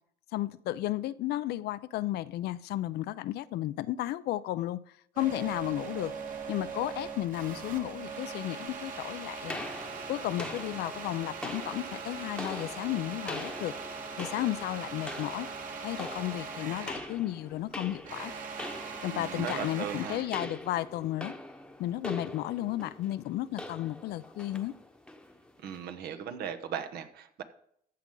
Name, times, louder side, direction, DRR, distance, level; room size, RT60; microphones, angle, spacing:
voice 1, 0.3-4.8 5.2-6.1 6.5-9.6 10.1-13.7 14.2-15.5 15.8-18.3 19.0-21.3 21.8-24.7, left 15 dB, 75° left, 0.5 m, -33 dB
sound 1, 5.2-17.2 17.5-20.4, right 5 dB, 50° right, 2.0 m, -40 dB
sound 2, 9.5-25.8, left 1 dB, 5° left, 1.0 m, -43 dB
voice 2, 19.1-20.2 25.6-27.4, right 8 dB, 70° right, 1.2 m, -37 dB
14.0 x 7.6 x 3.9 m
cardioid pair, 110°, 17 cm